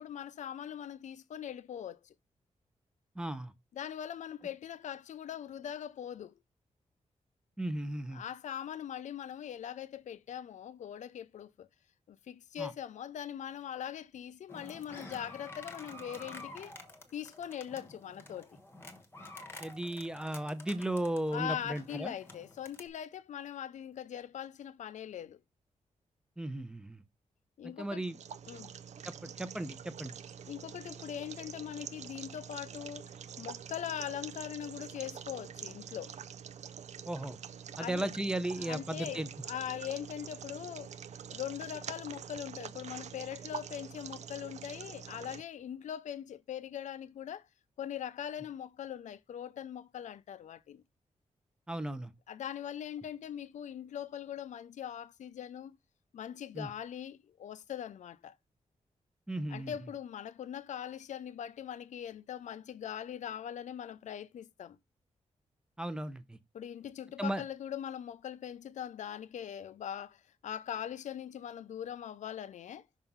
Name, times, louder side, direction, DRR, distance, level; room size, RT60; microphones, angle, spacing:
voice 1, 0.0-2.1 3.7-6.3 8.1-11.7 12.1-16.7 17.1-18.5 21.3-25.4 27.6-28.0 28.5-28.7 30.5-36.1 37.8-38.1 38.6-40.9 41.3-47.5 47.8-50.8 52.3-55.8 56.1-58.3 59.5-64.8 66.5-72.9, left 9 dB, 70° left, 0.5 m, -41 dB
voice 2, 3.2-3.5 7.6-8.2 12.6-12.7 19.6-22.1 26.4-27.0 27.6-28.2 29.0-30.1 37.1-37.4 37.8-39.3 51.7-52.1 56.5-56.7 59.3-59.7 65.8-66.4 67.2-67.4, right 1 dB, 5° right, 0.7 m, -35 dB
sound 1, 14.5-22.9, left 2 dB, 20° left, 1.1 m, -50 dB
sound 2, 28.0-45.4, right 8 dB, 65° right, 0.5 m, -46 dB
5.8 x 3.7 x 5.5 m
wide cardioid pair, 170°, 13 cm